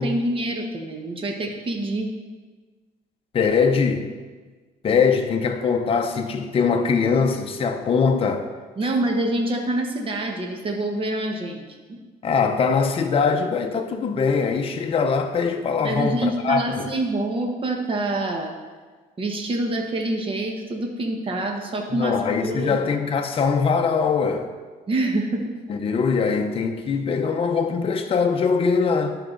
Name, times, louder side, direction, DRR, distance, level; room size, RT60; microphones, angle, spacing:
voice 1, 0.0-2.1 8.7-12.0 15.8-18.5 19.2-22.2 22.4-22.8 24.9-25.5, right 1 dB, 30° right, 1.2 m, -26 dB
voice 2, 3.3-4.1 4.8-8.5 12.2-16.9 21.9-24.5 25.7-29.2, left 5 dB, 35° left, 0.7 m, -22 dB
11.5 x 4.7 x 3.9 m
cardioid pair, 110°, 17 cm